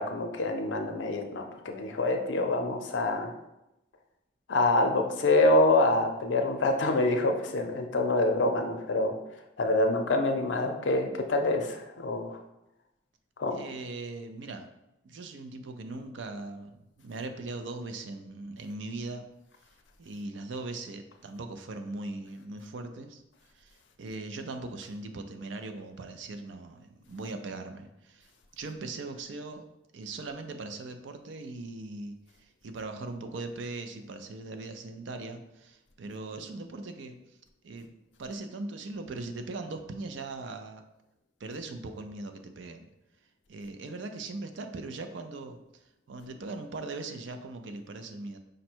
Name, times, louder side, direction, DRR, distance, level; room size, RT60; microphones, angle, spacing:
voice 1, 0.0-3.3 4.5-12.4 13.4-13.6, left 2 dB, 70° left, 4 dB, 0.5 m, -26 dB
voice 2, 13.5-14.7 15.0-19.3 20.0-23.2 23.5-28.3 28.6-29.7 29.9-37.2 37.6-40.8 41.4-42.8 43.5-45.6 46.1-48.4, right 3 dB, 70° right, 7 dB, 0.5 m, -40 dB
5.0 x 2.2 x 4.4 m, 0.90 s
head